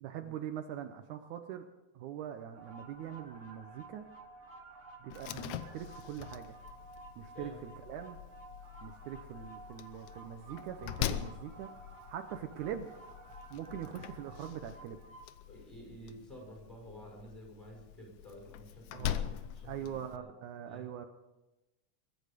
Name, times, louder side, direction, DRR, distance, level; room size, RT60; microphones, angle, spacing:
voice 1, 0.0-1.7 2.0-4.0 5.0-6.6 7.2-8.2 8.8-11.7 12.1-12.9 13.5-15.0 18.9-21.1, right 10 dB, 75° right, 6 dB, 2.2 m, -42 dB
sound 1, 2.5-15.2, right 3 dB, 55° right, 0.8 m, -53 dB
Slam, 5.1-20.2, left 12 dB, 75° left, 1.8 m, -43 dB
voice 2, 15.5-20.3 20.7-20.9, equal, ahead, -1 dB, 5.4 m, -51 dB
23.0 x 10.5 x 5.1 m, 1.0 s
omnidirectional pair, 3.6 m